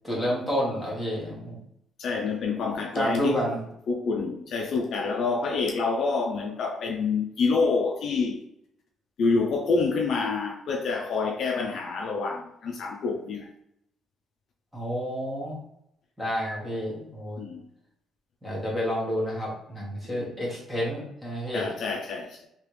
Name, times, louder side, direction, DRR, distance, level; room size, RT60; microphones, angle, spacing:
voice 1, 0.0-1.6 2.9-3.6 14.7-15.6 16.2-17.4 18.4-21.7, equal, 5° right, 1.2 m, -29 dB
voice 2, 2.0-3.4 3.9-8.4 9.2-13.5 17.4-17.7 20.0-20.3 21.5-22.5, left 4 dB, 55° left, 0.4 m, -27 dB
3.2 x 2.9 x 3.1 m
cardioid pair, 155°, 0 cm